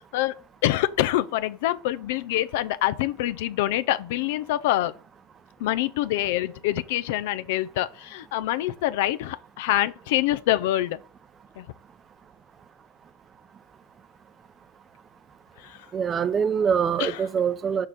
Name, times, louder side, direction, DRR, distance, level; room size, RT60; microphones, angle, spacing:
voice 1, 0.0-4.9 5.6-11.0 11.6-11.7 15.6-15.9 17.0-17.2, left 14 dB, 75° left, 0.5 m, -26 dB
voice 2, 15.9-17.9, right 7 dB, 30° right, 0.6 m, -24 dB
6.4 x 3.7 x 6.0 m
supercardioid pair, 105°, 0 cm